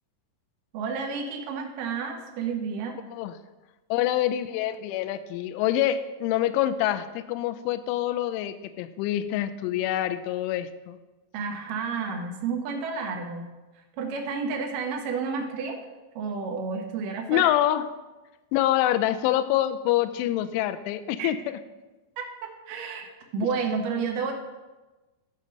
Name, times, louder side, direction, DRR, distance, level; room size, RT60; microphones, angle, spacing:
voice 1, 0.7-3.0 11.3-13.5 14.0-15.8 16.2-17.5 21.2-21.3 22.2-24.3, right 5 dB, 65° right, 2 dB, 2.2 m, -31 dB
voice 2, 3.9-11.0 17.3-17.9 18.5-21.6, left 12 dB, 85° left, 11 dB, 3.0 m, -26 dB
13.5 x 5.3 x 6.3 m, 1.1 s
omnidirectional pair, 5.5 m